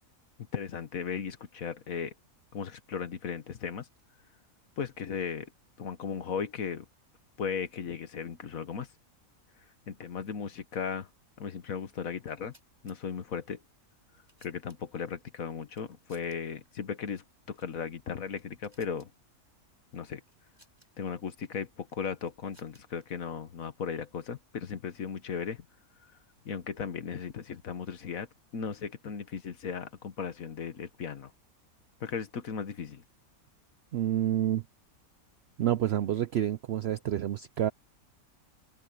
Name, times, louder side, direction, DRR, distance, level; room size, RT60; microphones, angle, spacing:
voice 1, 0.5-2.1 2.5-3.9 4.8-5.5 5.8-6.9 7.4-8.9 9.9-11.1 11.4-12.5 12.8-13.6 14.4-19.1 19.9-20.2 21.0-25.6 26.5-28.3 28.5-31.3 32.0-33.0, left 6 dB, 65° left, 1.7 m, -36 dB
sound 1, 12.2-13.0 13.8-15.1 15.7-16.4 16.7-16.8 17.5-17.8 18.1-19.1 20.3-20.9 21.9-23.0, right 1 dB, 15° right, 7.5 m, -64 dB
voice 2, 33.9-34.6 35.6-37.7, right 11 dB, 70° right, 0.6 m, -28 dB
open air
omnidirectional pair, 1.6 m